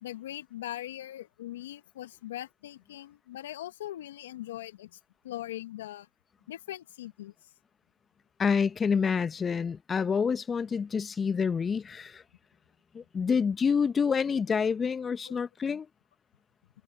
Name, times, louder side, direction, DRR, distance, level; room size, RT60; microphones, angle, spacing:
voice 1, 0.0-5.0 5.2-6.1 6.5-7.3 15.2-15.3, left 13 dB, 85° left, 1.6 m, -40 dB
voice 2, 8.4-12.2 12.9-15.9, left 6 dB, 40° left, 1.1 m, -27 dB
hypercardioid pair, 55°, 0 cm